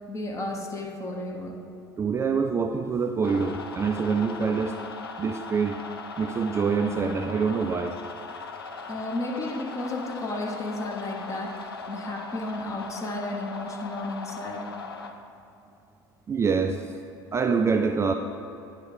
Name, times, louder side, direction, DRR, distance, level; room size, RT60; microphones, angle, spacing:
voice 1, 0.0-1.6 8.9-14.7, left 2 dB, 25° left, 2 dB, 1.0 m, -33 dB
voice 2, 2.0-4.8 5.2-5.8 6.2-8.0 16.3-16.8 17.3-18.1, right 5 dB, 20° right, 5 dB, 0.3 m, -25 dB
sound 1, 3.2-15.1, left 4 dB, 85° left, 0.4 m, -39 dB
9.3 x 3.7 x 5.0 m, 2.8 s
figure-of-eight pair, 70°, 12 cm